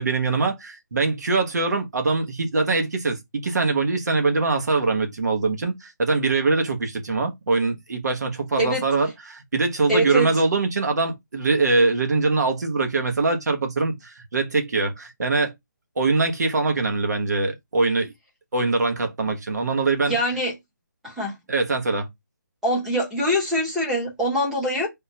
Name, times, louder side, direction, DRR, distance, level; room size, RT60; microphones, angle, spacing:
voice 1, 0.0-15.5 16.0-18.1 18.5-20.2 21.5-22.1, right 3 dB, 60° right, 1.0 m, -23 dB
voice 2, 9.9-10.3 20.1-20.5 21.0-21.3 22.6-24.9, equal, 5° right, 0.7 m, -23 dB
3.5 x 2.2 x 2.7 m
hypercardioid pair, 170°, 10 cm